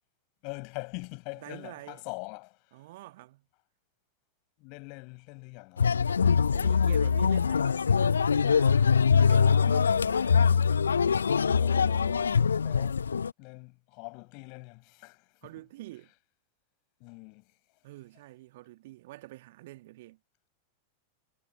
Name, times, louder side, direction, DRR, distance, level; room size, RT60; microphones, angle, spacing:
voice 1, 0.4-2.6 4.6-5.9 11.5-13.0 13.4-15.3 17.0-17.5, left 34 dB, 45° left, 5.7 m, -43 dB
voice 2, 1.3-2.0 2.7-3.5 6.5-8.9 9.1-10.4 11.3-11.4 15.4-16.1 17.8-20.2, right 17 dB, 55° right, 1.6 m, -47 dB
sound 1, 5.8-13.3, left 6 dB, 70° left, 0.4 m, -23 dB
figure-of-eight pair, 90°, 0 cm